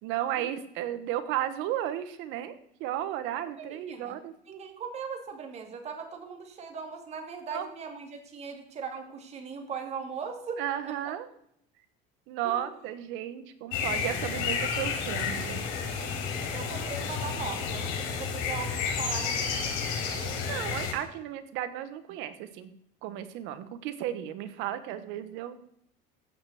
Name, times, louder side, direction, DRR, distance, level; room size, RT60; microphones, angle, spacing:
voice 1, 0.0-4.3 7.5-7.7 10.6-11.3 12.3-15.6 20.1-22.7 23.0-25.6, right 11 dB, 65° right, 11 dB, 1.3 m, -34 dB
voice 2, 3.6-4.2 4.5-10.9 12.4-12.7 16.5-19.8, right 5 dB, 30° right, 5 dB, 2.2 m, -39 dB
sound 1, 13.7-20.9, left 6 dB, 80° left, 4.5 m, -31 dB
14.5 x 5.7 x 7.8 m, 0.73 s
cardioid pair, 150°, 21 cm